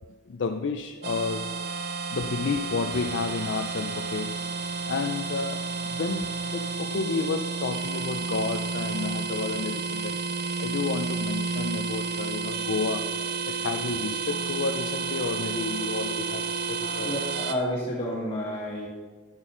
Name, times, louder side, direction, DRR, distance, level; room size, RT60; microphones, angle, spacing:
voice 1, 0.3-1.6 2.1-4.4 4.9-10.2 10.6-13.1 13.5-17.2, left 4 dB, 70° left, 6 dB, 0.4 m, -31 dB
sound 1, 1.0-17.5, right 4 dB, 55° right, 0.6 m, -31 dB
voice 2, 16.9-18.9, equal, 30° left, -7 dB, 2.2 m, -30 dB
10.5 x 8.5 x 3.8 m, 1.4 s
head